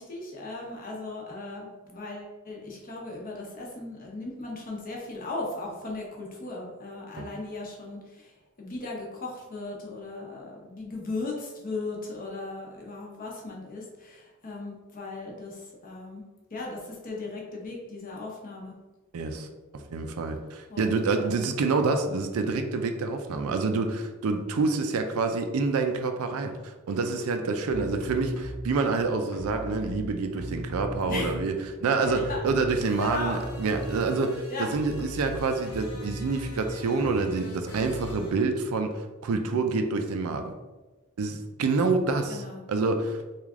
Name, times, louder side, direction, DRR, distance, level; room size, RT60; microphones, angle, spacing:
voice 1, 0.0-8.3 8.6-15.6 15.8-16.2 16.5-18.7 20.7-21.4 31.1-31.3 32.1-32.4 33.0-33.4 34.5-34.7 42.3-42.6, left 2 dB, 40° left, -2 dB, 0.8 m, -37 dB
voice 2, 19.1-19.5 19.7-31.5 31.8-40.5 41.2-43.2, right 4 dB, 70° right, 6 dB, 0.4 m, -27 dB
sound 1, 27.7-28.8 29.3-31.7 32.0-38.3, equal, 75° left, 0.8 m, -38 dB
3.2 x 2.4 x 3.5 m, 1.2 s
head